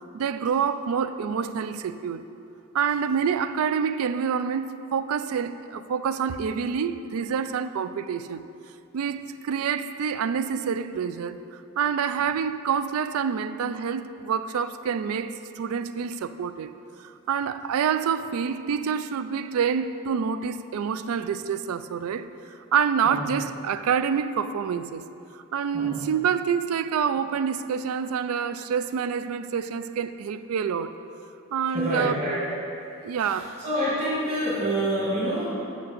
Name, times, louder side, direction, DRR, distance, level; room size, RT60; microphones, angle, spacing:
voice 1, 0.1-2.2 2.7-8.4 8.9-16.7 17.0-25.0 25.3-30.9 31.5-32.2 33.0-33.6, right 7 dB, 80° right, 12 dB, 0.3 m, -27 dB
voice 2, 31.7-32.4 33.2-35.6, equal, 35° right, -10 dB, 2.1 m, -27 dB
6.7 x 6.1 x 6.6 m, 2.7 s
head